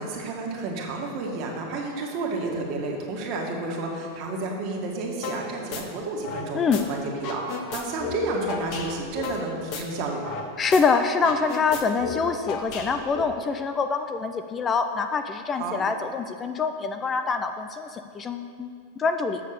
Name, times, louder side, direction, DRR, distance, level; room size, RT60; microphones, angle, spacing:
voice 1, 0.0-10.3 15.6-15.9, right 3 dB, 45° right, -1 dB, 1.8 m, -31 dB
sound 1, 5.2-5.4 5.7-6.8 7.1-10.4 10.7-10.8 11.1-13.2, left 5 dB, 50° left, 1.0 m, -34 dB
voice 2, 6.5-6.9 10.6-19.4, left 5 dB, 20° left, 8 dB, 0.4 m, -25 dB
7.5 x 6.3 x 6.6 m, 2.3 s
supercardioid pair, 135°, 0 cm